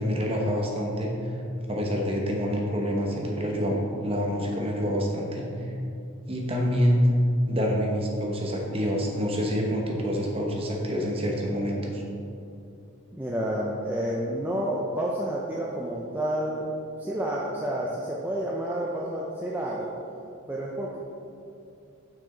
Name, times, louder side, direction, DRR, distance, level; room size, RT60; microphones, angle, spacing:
voice 1, 0.0-1.3 1.7-5.7 6.3-7.0 7.5-12.0, equal, 25° right, 0 dB, 0.9 m, -27 dB
voice 2, 13.1-16.7 17.0-19.9 20.5-21.0, right 1 dB, 10° right, -4 dB, 0.4 m, -30 dB
7.0 x 6.0 x 3.8 m, 2.6 s
head